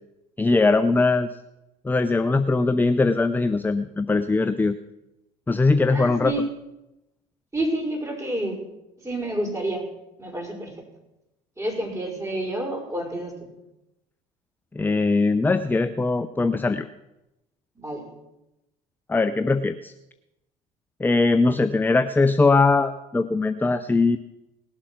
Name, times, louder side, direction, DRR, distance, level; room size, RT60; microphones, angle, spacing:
voice 1, 0.4-1.3 1.8-4.8 5.5-6.3 14.7-16.9 19.1-19.9 21.0-24.2, left 3 dB, 10° left, 11 dB, 0.6 m, -21 dB
voice 2, 5.9-6.5 7.5-8.6 9.0-9.9 10.2-10.7 11.6-13.5 17.8-18.1, right 1 dB, 15° right, 0 dB, 5.6 m, -29 dB
19.0 x 7.5 x 6.2 m, 0.93 s
hypercardioid pair, 65°, 20 cm